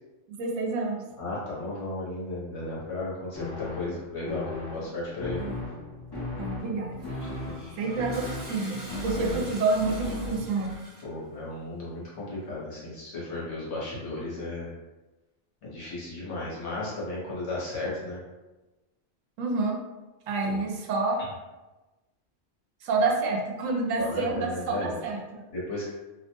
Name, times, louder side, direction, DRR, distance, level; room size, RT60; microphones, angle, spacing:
voice 1, 0.4-1.0 5.4-5.6 6.4-7.0 7.8-10.7 19.4-19.8 20.3-21.2 22.8-25.5, right 3 dB, 90° right, 1 dB, 1.0 m, -28 dB
voice 2, 1.2-5.4 7.4-7.5 9.2-9.4 11.0-14.7 15.6-18.2 20.4-20.6 24.0-24.9 25.5-25.9, left 2 dB, 65° left, -6 dB, 1.2 m, -34 dB
sound 1, 3.3-10.7, left 2 dB, 35° left, 0.4 m, -37 dB
Toilet flush, 6.9-11.2, right 1 dB, 25° right, 0.5 m, -45 dB
2.7 x 2.1 x 2.8 m, 1.1 s
omnidirectional pair, 1.3 m